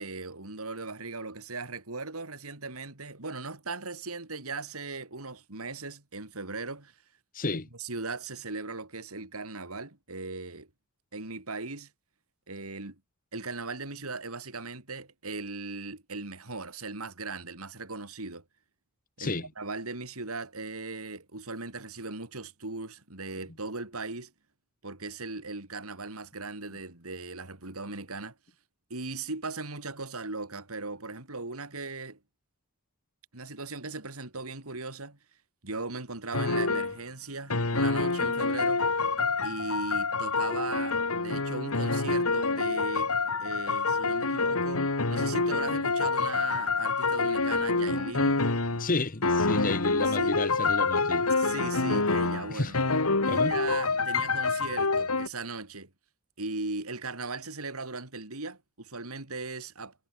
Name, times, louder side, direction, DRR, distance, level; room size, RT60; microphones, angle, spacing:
voice 1, 0.0-6.9 7.5-10.7 11.1-11.9 12.5-13.0 13.3-18.4 19.2-24.3 24.8-28.3 28.9-32.2 33.3-35.2 35.6-38.8 39.4-43.1 43.4-48.4 49.9-50.4 51.4-52.8 53.2-55.9 56.4-59.9, right 3 dB, 80° right, 3.8 m, -38 dB
voice 2, 7.3-7.7 19.2-19.5 48.8-51.3 52.5-52.7 53.2-53.5, left 3 dB, 40° left, 1.4 m, -31 dB
sound 1, 36.3-37.0 37.5-49.0 49.2-55.3, left 3 dB, 85° left, 2.5 m, -27 dB
head